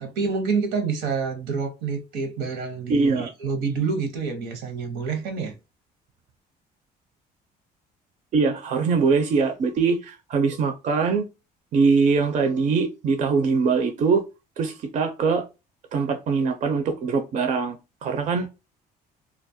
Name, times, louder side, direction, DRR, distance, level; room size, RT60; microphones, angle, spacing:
voice 1, 0.0-5.5, right 5 dB, 80° right, 0.8 m, -27 dB
voice 2, 2.9-3.3 8.3-11.2 11.7-14.2 14.6-15.4 15.9-18.5, right 4 dB, 45° right, 0.5 m, -22 dB
2.3 x 2.0 x 2.6 m
cardioid pair, 110°, 17 cm